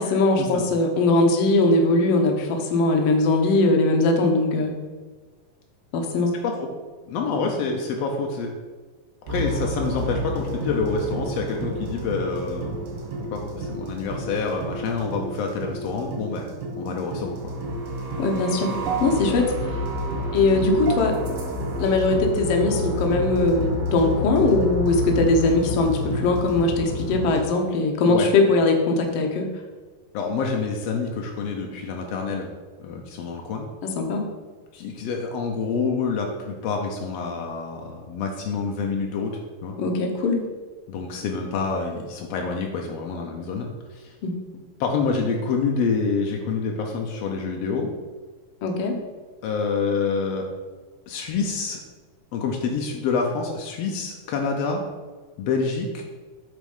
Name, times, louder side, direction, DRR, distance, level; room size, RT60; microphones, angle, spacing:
voice 1, 0.0-4.7 5.9-6.3 18.2-18.7 19.0-19.5 20.3-21.1 21.8-29.4 34.0-34.2 39.8-40.4 44.2-44.3 48.6-48.9, left 2 dB, 70° left, 3 dB, 1.5 m, -20 dB
voice 2, 6.3-6.7 7.1-8.5 9.3-12.8 13.3-17.5 28.1-28.3 30.1-32.5 32.8-33.7 34.7-39.8 40.9-44.2 44.8-47.9 49.4-50.4 51.1-51.8 52.3-54.8 55.4-56.0, left 4 dB, 85° left, 2 dB, 1.4 m, -27 dB
sound 1, 9.3-27.4, equal, 75° right, 3.0 m, -29 dB
8.1 x 4.3 x 5.4 m, 1.4 s
omnidirectional pair, 3.9 m